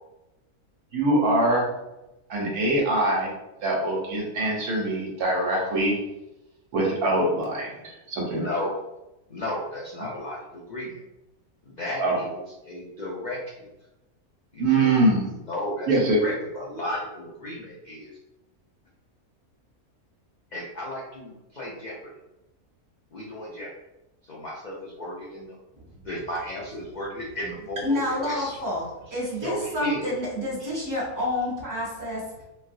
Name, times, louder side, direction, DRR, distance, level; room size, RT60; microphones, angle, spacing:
voice 1, 0.9-1.6 2.3-3.3 3.6-6.0 6.7-8.5 12.0-12.1 14.6-15.2 15.9-16.2, right 2 dB, 85° right, -2 dB, 1.4 m, -23 dB
voice 2, 8.3-8.8 9.3-11.0 11.7-13.7 14.5-15.1 15.4-18.1 20.5-22.1 23.1-23.7 24.2-25.6 26.0-28.6 29.4-30.1 30.6-30.7, left 1 dB, 70° left, -5 dB, 0.4 m, -34 dB
voice 3, 27.8-32.4, left 1 dB, 15° right, -7 dB, 0.9 m, -29 dB
4.2 x 2.0 x 2.5 m, 0.95 s
omnidirectional pair, 1.6 m